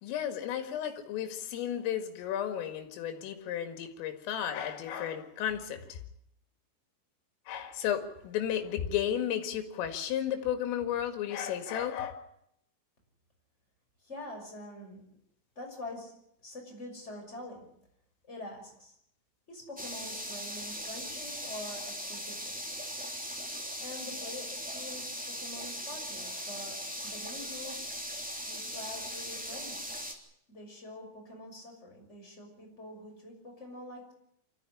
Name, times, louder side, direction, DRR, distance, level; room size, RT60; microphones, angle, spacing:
voice 1, 0.0-6.0 7.5-12.1, left 10 dB, 85° left, 4.6 m, -33 dB
voice 2, 14.0-15.0 15.5-16.1 16.4-17.7 18.3-19.0 19.5-22.5 23.8-27.8 28.4-29.8 30.5-34.1, left 1 dB, 15° left, 6.2 m, -45 dB
sound 1, 19.8-30.1, equal, 5° right, 1.5 m, -39 dB
25.5 x 14.0 x 9.9 m
omnidirectional pair, 5.7 m